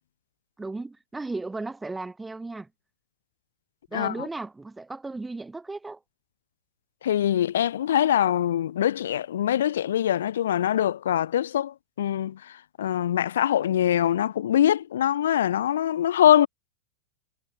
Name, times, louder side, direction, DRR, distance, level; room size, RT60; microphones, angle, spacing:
voice 1, 0.6-2.7 3.9-6.0, right 3 dB, 10° right, 0.4 m, -35 dB
voice 2, 3.9-4.3 7.0-12.5 12.8-16.5, left 10 dB, 60° left, 0.3 m, -23 dB
figure-of-eight pair, 90°, 0 cm